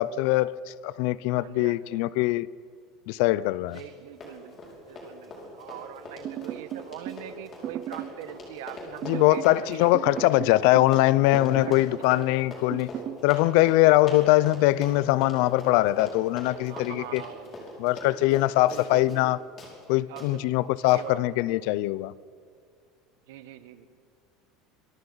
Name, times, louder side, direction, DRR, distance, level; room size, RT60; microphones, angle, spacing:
voice 1, 0.0-2.5 3.1-3.8 9.1-12.9 13.2-17.2 17.8-19.4 19.9-22.1, left 17 dB, 65° left, 0.5 m, -22 dB
voice 2, 1.3-2.0 3.7-10.4 11.6-13.0 16.7-17.6 18.7-19.2 20.1-20.4 20.8-21.2 23.3-23.9, right 12 dB, 90° right, 1.3 m, -43 dB
Run, 3.7-4.0 4.2-19.3 19.6-19.7 20.2-20.3 20.9-21.0, left 2 dB, 25° left, 5.3 m, -42 dB
sound 1, 6.2-7.2 7.6-8.2 9.0-9.6 9.9-11.0 11.3-11.9 12.7-13.2, right 12 dB, 35° right, 0.5 m, -36 dB
26.5 x 24.0 x 4.1 m
cardioid pair, 170°, 0 cm